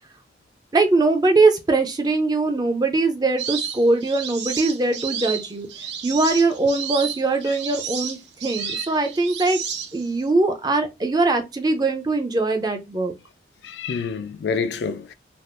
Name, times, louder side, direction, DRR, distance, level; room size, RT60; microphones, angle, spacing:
voice 1, 0.7-5.7 6.0-9.6 9.9-13.1, right 3 dB, 20° right, 0.4 m, -21 dB
sound 1, 3.4-10.2, right 7 dB, 75° right, 0.6 m, -31 dB
voice 2, 13.6-15.1, left 5 dB, 70° left, 0.3 m, -28 dB
3.4 x 2.3 x 2.5 m
head